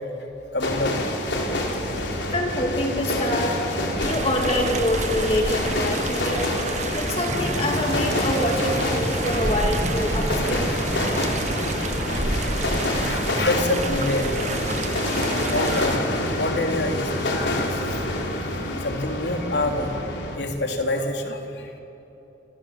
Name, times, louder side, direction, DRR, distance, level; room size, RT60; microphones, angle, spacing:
voice 1, 0.5-0.9 2.0-2.1 12.4-12.6 12.8-14.6 15.4-18.1 18.4-20.0 20.3-21.7, left 1 dB, 75° left, 3 dB, 3.6 m, -27 dB
sound 1, 0.6-20.4, left 1 dB, 90° left, 4.4 m, -27 dB
voice 2, 2.3-3.6 4.0-6.5 6.9-10.7, left 1 dB, 35° left, 1 dB, 2.4 m, -26 dB
sound 2, 4.0-16.0, right 3 dB, 40° right, 1.7 m, -30 dB
sound 3, 7.3-13.9, equal, 15° right, 1.8 m, -32 dB
29.0 x 26.0 x 7.5 m, 3.0 s
head